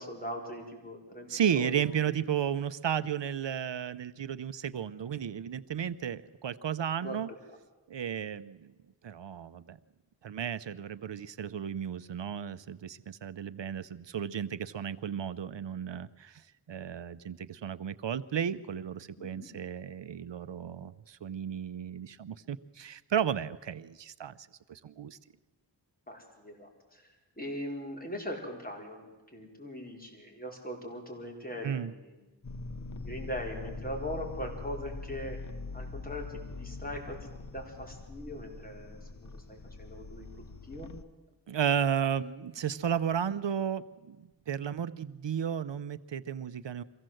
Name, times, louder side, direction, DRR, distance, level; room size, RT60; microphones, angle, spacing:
voice 1, 0.0-2.2 7.0-7.2 19.2-19.5 26.1-32.1 32.8-35.4 35.7-37.2 37.5-40.9, equal, 20° left, 1 dB, 4.9 m, -41 dB
voice 2, 1.3-7.3 7.9-8.7 9.0-9.8 10.2-25.2 31.6-31.9 41.5-46.8, right 8 dB, 80° right, 15 dB, 0.7 m, -33 dB
sound 1, 32.4-41.0, left 3 dB, 40° left, 1.1 m, -43 dB
23.5 x 16.0 x 7.7 m, 1.2 s
wide cardioid pair, 50°, 43 cm